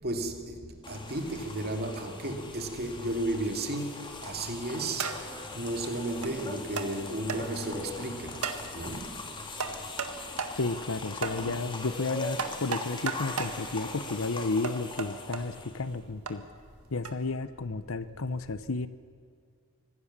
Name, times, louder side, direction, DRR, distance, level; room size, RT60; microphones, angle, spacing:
voice 1, 0.0-5.2 5.5-8.4 8.7-9.2 11.4-11.6, right 1 dB, 45° right, 2.4 m, -34 dB
sound 1, 0.8-16.0, left 3 dB, 20° left, 2.1 m, -41 dB
sound 2, 4.1-4.4 5.0-5.4 6.2-6.3 6.8-6.9 7.3-7.4 8.4-8.7 9.6-10.1 10.4-10.6 11.2-11.4 12.4-13.6 14.6-15.4 16.3-16.4 17.1-17.2, right 5 dB, 80° right, 1.8 m, -34 dB
voice 2, 10.5-16.4 16.9-18.9, left 3 dB, 65° left, 0.9 m, -32 dB
25.5 x 16.5 x 7.4 m
head